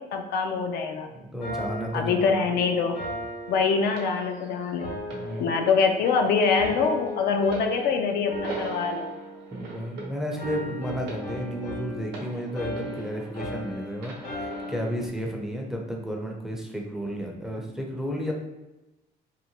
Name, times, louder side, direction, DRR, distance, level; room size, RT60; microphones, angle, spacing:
voice 1, 0.0-1.1 1.9-3.0 3.5-4.9 5.4-9.1, left 5 dB, 70° left, 4 dB, 0.4 m, -24 dB
voice 2, 1.1-2.4 5.1-5.5 9.5-18.3, equal, 5° right, 0 dB, 0.4 m, -32 dB
sound 1, 1.4-4.3 4.8-6.1 6.6-7.9 8.3-10.0 10.4-15.1, left 1 dB, 85° left, 1.2 m, -37 dB
sound 2, 4.0-13.6 14.0-15.0 15.8-16.0, right 3 dB, 80° right, 0.7 m, -42 dB
2.7 x 2.1 x 2.7 m, 1.0 s
cardioid pair, 110°, 17 cm